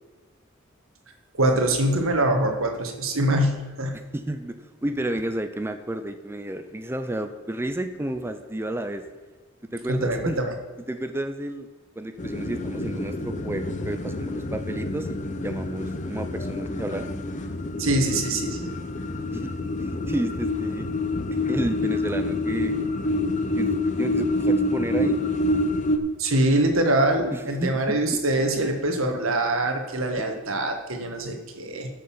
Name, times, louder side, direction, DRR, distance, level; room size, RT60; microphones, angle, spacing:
voice 1, 1.3-3.9 9.9-10.5 17.8-18.7 26.2-31.9, right 1 dB, 80° right, 4 dB, 1.6 m, -24 dB
voice 2, 3.9-4.6 4.8-9.0 9.7-10.4 10.9-11.7 12.0-17.1 19.3-19.5 19.8-20.9 21.5-22.8 23.6-25.2 27.3-28.2 30.2-30.3, right 1 dB, 10° right, 7 dB, 0.5 m, -31 dB
sound 1, 12.2-26.0, left 2 dB, 35° left, 0.8 m, -27 dB
12.0 x 6.6 x 5.6 m, 1.5 s
head